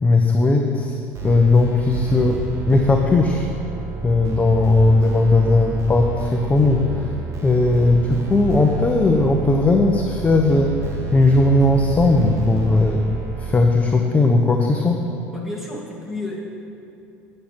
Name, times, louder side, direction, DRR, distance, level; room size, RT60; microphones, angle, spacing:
voice 1, 0.0-3.5 4.0-7.1 7.4-13.1 13.4-15.0, left 2 dB, 20° left, 2 dB, 0.9 m, -17 dB
sound 1, 1.1-13.5, right 4 dB, 45° right, 1.8 m, -30 dB
voice 2, 15.3-16.4, left 2 dB, ahead, -3 dB, 2.7 m, -31 dB
8.9 x 6.6 x 7.4 m, 2.7 s
hypercardioid pair, 70°, 7 cm